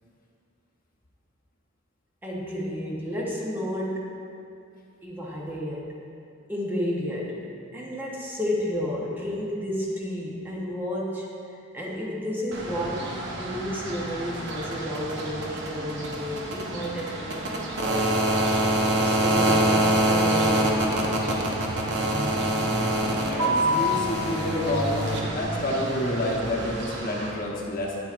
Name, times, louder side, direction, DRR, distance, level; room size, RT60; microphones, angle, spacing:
voice 1, 2.2-4.2 5.0-5.9 6.5-7.5 7.7-11.3 11.7-18.1 19.0-21.2, equal, 10° right, -4 dB, 0.8 m, -31 dB
sound 1, 12.5-27.3, right 1 dB, 60° right, 0.9 m, -26 dB
voice 2, 23.3-28.0, left 1 dB, 45° left, -2 dB, 0.9 m, -28 dB
9.2 x 7.6 x 2.4 m, 2.5 s
head